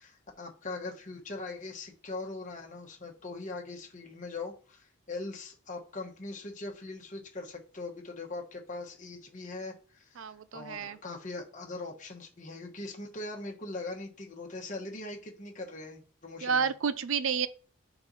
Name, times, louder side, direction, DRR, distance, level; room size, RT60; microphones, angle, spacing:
voice 1, 0.0-16.7, left 2 dB, 35° left, 1.2 m, -41 dB
voice 2, 10.2-11.0 16.4-17.5, right 6 dB, 65° right, 0.5 m, -30 dB
4.4 x 3.9 x 5.5 m
head